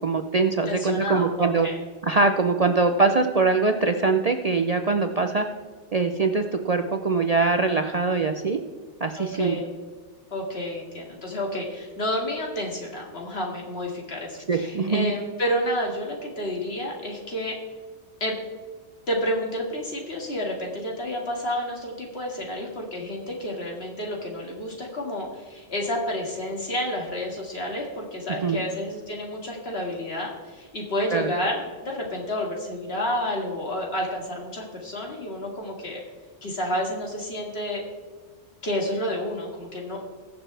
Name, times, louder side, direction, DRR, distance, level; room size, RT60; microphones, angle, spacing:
voice 1, 0.0-1.7 2.0-5.4 5.9-8.6 9.0-9.6 14.5-15.1 28.4-28.6 31.1-31.3, right 4 dB, 45° right, 6 dB, 0.5 m, -22 dB
voice 2, 0.7-1.8 9.2-9.7 10.3-17.5 18.2-18.3 19.1-36.0 36.4-37.8 38.6-40.0, equal, 60° left, 0 dB, 2.4 m, -30 dB
21.0 x 7.2 x 3.3 m, 1.4 s
omnidirectional pair, 1.2 m